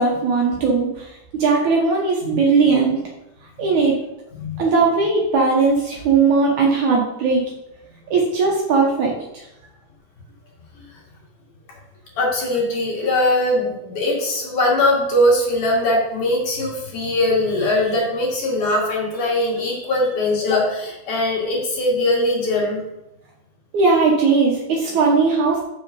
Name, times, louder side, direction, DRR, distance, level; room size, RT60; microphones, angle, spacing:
voice 1, 0.0-3.0 3.6-4.0 4.6-7.5 8.1-9.5 23.7-25.6, right 4 dB, 65° right, -1 dB, 2.1 m, -18 dB
voice 2, 12.1-22.8, left 1 dB, 60° left, -3 dB, 3.4 m, -21 dB
6.9 x 6.5 x 5.3 m, 0.90 s
omnidirectional pair, 4.3 m